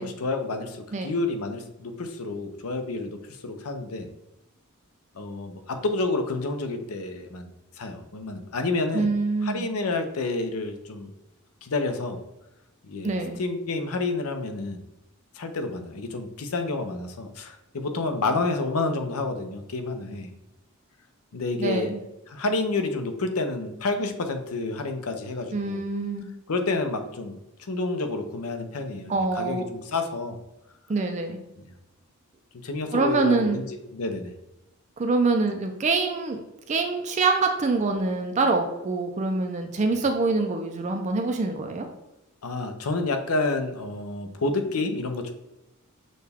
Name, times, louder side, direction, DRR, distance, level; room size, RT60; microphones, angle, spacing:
voice 1, 0.0-4.1 5.1-7.5 7.8-9.1 9.4-11.1 11.6-12.2 12.9-14.8 15.3-20.3 21.3-21.9 22.3-25.8 26.5-30.4 32.5-33.7 33.9-34.3 39.9-40.0 42.4-45.3, left 3 dB, 90° left, 6 dB, 0.6 m, -29 dB
voice 2, 8.9-9.6 13.0-13.4 21.6-22.0 25.5-26.3 29.1-29.7 30.9-31.4 32.9-33.6 35.0-36.4 36.7-41.9, right 3 dB, 35° right, 4 dB, 0.4 m, -25 dB
6.4 x 2.3 x 3.4 m, 0.93 s
head